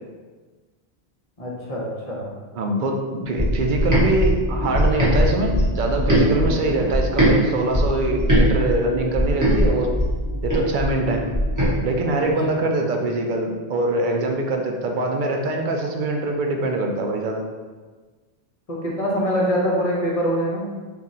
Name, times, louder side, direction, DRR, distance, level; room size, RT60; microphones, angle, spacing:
voice 1, 1.4-2.3 6.4-6.6 10.4-10.6 12.1-12.6 18.7-20.7, equal, 35° left, -4 dB, 0.8 m, -25 dB
voice 2, 2.5-9.9 10.4-11.2 11.8-17.4, right 2 dB, 60° right, 2 dB, 0.6 m, -23 dB
sound 1, 3.4-7.3 7.7-11.7, equal, 20° right, 0.9 m, -20 dB
3.7 x 2.5 x 4.1 m, 1.4 s
omnidirectional pair, 1.1 m